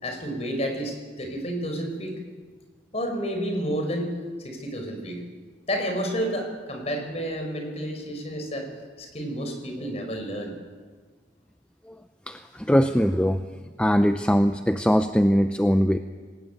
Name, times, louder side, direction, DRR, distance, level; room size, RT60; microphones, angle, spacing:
voice 1, 0.0-2.2 2.9-5.2 5.7-8.7 9.0-10.5, equal, 35° left, 4 dB, 4.9 m, -30 dB
voice 2, 12.3-13.4 13.8-16.0, equal, 5° left, 8 dB, 0.6 m, -21 dB
22.0 x 19.5 x 9.0 m, 1.5 s
head